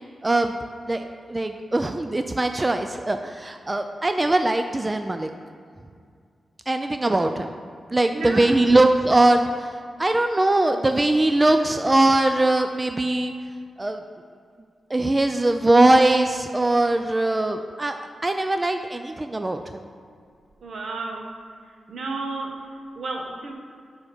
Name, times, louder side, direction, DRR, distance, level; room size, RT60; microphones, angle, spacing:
voice 1, 0.2-0.5 0.9-5.3 6.7-7.5 7.9-9.5 10.0-13.3 13.8-14.0 14.9-19.6, right 2 dB, 25° right, 6 dB, 0.3 m, -21 dB
voice 2, 8.1-8.5 20.6-21.3 21.9-22.5 23.0-23.5, right 3 dB, 75° right, 1 dB, 1.0 m, -31 dB
8.9 x 3.6 x 5.3 m, 2.2 s
cardioid pair, 75°, 0 cm